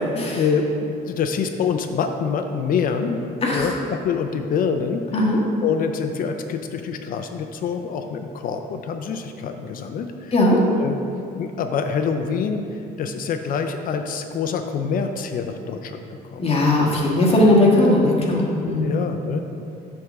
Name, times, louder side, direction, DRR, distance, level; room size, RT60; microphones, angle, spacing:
voice 1, 0.0-3.2 3.5-5.4 5.6-10.3 10.6-11.0 11.4-16.5 16.9-17.0 18.8-19.4, left 5 dB, 55° left, 6 dB, 0.5 m, -26 dB
voice 2, 16.4-19.0, left 1 dB, 35° left, -3 dB, 1.5 m, -18 dB
7.7 x 3.6 x 6.4 m, 2.7 s
cardioid pair, 110°, 17 cm